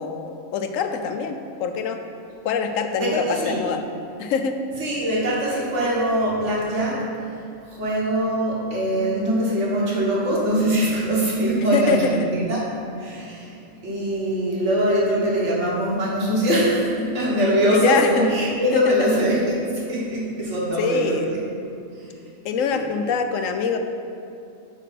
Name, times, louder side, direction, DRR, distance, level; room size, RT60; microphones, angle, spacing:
voice 1, 0.0-2.0 2.4-3.8 4.2-4.6 11.7-12.3 17.7-18.3 18.7-18.9 20.8-21.3 22.4-23.8, left 6 dB, 75° left, 6 dB, 1.0 m, -24 dB
voice 2, 3.0-3.6 4.8-12.6 13.0-13.6 13.8-19.6 19.9-21.4 22.0-22.1 22.7-22.8, right 1 dB, 60° right, -5 dB, 1.8 m, -22 dB
6.2 x 5.0 x 5.8 m, 2.6 s
omnidirectional pair, 1.4 m